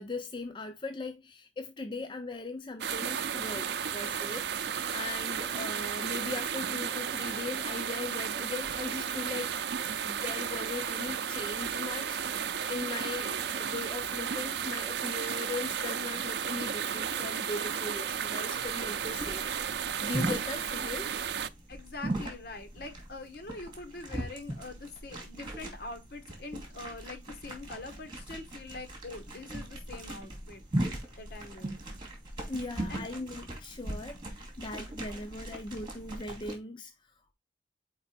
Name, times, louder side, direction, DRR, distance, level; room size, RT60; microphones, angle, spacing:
voice 1, 0.0-9.5 10.0-19.5 20.0-21.1 32.5-37.3, left 3 dB, 25° left, 0.5 m, -39 dB
sound 1, 2.8-21.5, right 7 dB, 70° right, 0.5 m, -33 dB
sound 2, 18.6-36.5, right 1 dB, 25° right, 2.4 m, -39 dB
voice 2, 21.7-30.6 31.2-32.0 32.9-33.1, left 3 dB, 60° left, 1.4 m, -44 dB
4.9 x 4.7 x 4.2 m
head